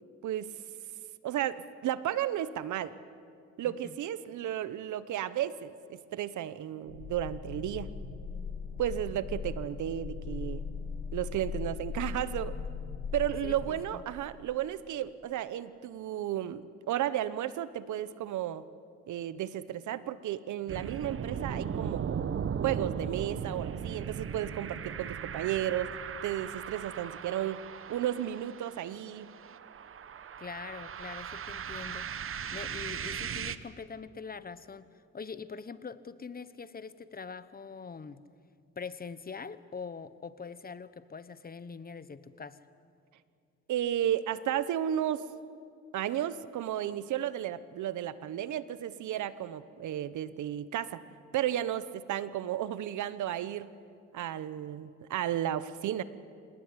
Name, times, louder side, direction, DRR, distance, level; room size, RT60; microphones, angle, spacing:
voice 1, 1.2-2.9 3.6-7.9 8.8-10.6 11.1-12.6 13.1-18.6 19.1-22.2 22.6-27.6 27.9-29.3 43.7-45.3 45.9-51.0 51.3-53.7 54.1-56.0, right 11 dB, 75° right, 15 dB, 1.1 m, -33 dB
voice 2, 3.6-4.0 13.4-14.0 30.4-32.1 32.5-38.2 38.8-42.7, left 5 dB, 30° left, 15 dB, 1.0 m, -43 dB
sound 1, 6.9-13.6, left 6 dB, 85° left, 3.8 m, -38 dB
sound 2, 20.7-33.6, right 7 dB, 45° right, 1.1 m, -38 dB
26.0 x 18.5 x 9.7 m, 2.3 s
cardioid pair, 90°, 30 cm